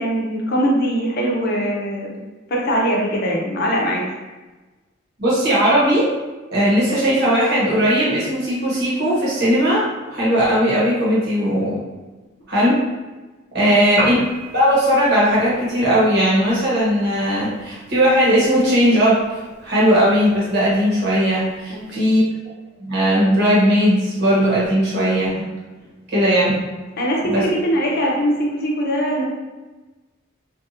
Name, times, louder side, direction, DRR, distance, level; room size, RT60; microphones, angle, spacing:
voice 1, 0.0-2.2 2.5-4.0 13.6-13.7 21.7-22.1 27.0-29.2, equal, 50° left, -2 dB, 0.6 m, -21 dB
voice 2, 5.2-6.1 6.5-11.8 12.5-12.8 13.5-14.1 14.5-22.2 22.8-25.5 26.1-26.6 27.2-27.5, equal, 55° right, -7 dB, 1.1 m, -18 dB
Piano, 13.9-21.9, right 1 dB, 85° right, 1.2 m, -36 dB
2.5 x 2.3 x 2.8 m, 1.2 s
head